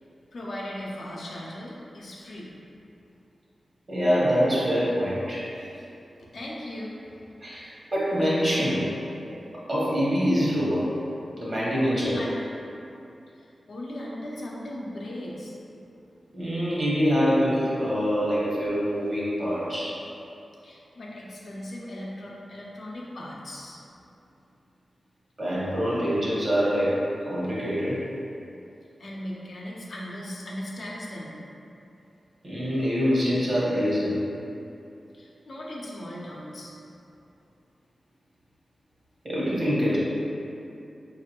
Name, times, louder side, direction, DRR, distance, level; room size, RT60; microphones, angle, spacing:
voice 1, 0.3-2.5 6.3-7.0 11.8-12.3 13.3-15.6 20.6-23.8 29.0-31.4 35.1-36.7, left 1 dB, 70° left, -4 dB, 0.7 m, -38 dB
voice 2, 3.9-5.5 7.4-8.9 9.3-9.4 9.7-10.9 11.4-12.1 16.3-20.0 25.4-27.0 27.3-28.0 32.4-34.2 39.2-40.0, equal, 45° right, -7 dB, 1.4 m, -25 dB
4.9 x 2.7 x 2.9 m, 2.7 s
cardioid pair, 60°, 0 cm